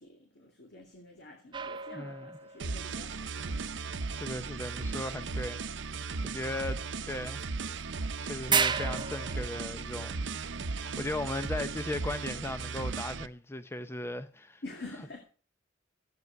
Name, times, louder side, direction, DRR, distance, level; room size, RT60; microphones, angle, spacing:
voice 1, 0.0-3.8 14.6-15.2, left 2 dB, 65° left, 2.7 m, -47 dB
sound 1, 1.5-2.8 7.4-7.5 7.8-7.9 8.5-9.4, right 6 dB, 25° right, 0.7 m, -31 dB
voice 2, 1.9-2.3 4.1-5.6 6.2-7.4 8.2-10.3 10.7-14.6, left 2 dB, 15° left, 0.6 m, -37 dB
sound 2, 2.6-13.3, right 4 dB, 80° right, 0.7 m, -36 dB
13.5 x 9.5 x 5.9 m
head